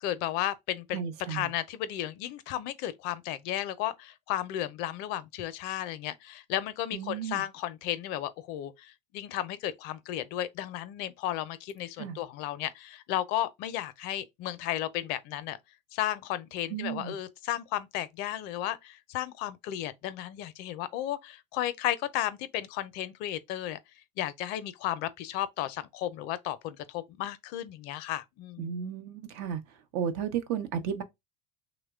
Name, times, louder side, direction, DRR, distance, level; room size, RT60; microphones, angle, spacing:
voice 1, 0.0-1.0 1.3-15.6 15.9-23.8 24.2-28.7, left 13 dB, 65° left, 0.5 m, -34 dB
voice 2, 0.9-1.5 6.9-7.4 12.0-12.2 16.7-17.2 28.6-29.6 29.9-31.0, right 8 dB, 70° right, 0.7 m, -33 dB
3.0 x 2.1 x 3.4 m
supercardioid pair, 100°, 18 cm